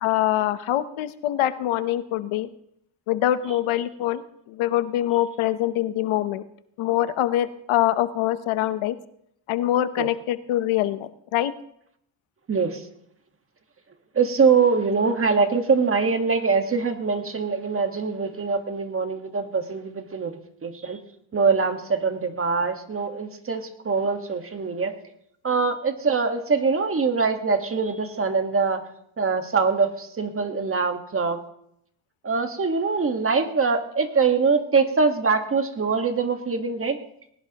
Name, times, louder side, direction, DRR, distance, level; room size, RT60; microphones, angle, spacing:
voice 1, 0.0-2.5 3.1-4.2 4.5-6.4 6.8-9.0 9.5-11.5, left 13 dB, 80° left, 12 dB, 1.0 m, -24 dB
voice 2, 12.5-12.8 14.1-20.3 20.6-21.0 21.3-24.9 25.4-28.8 29.2-31.4 32.2-37.0, right 5 dB, 25° right, 6 dB, 1.5 m, -23 dB
21.0 x 18.5 x 2.9 m, 0.73 s
cardioid pair, 125°, 48 cm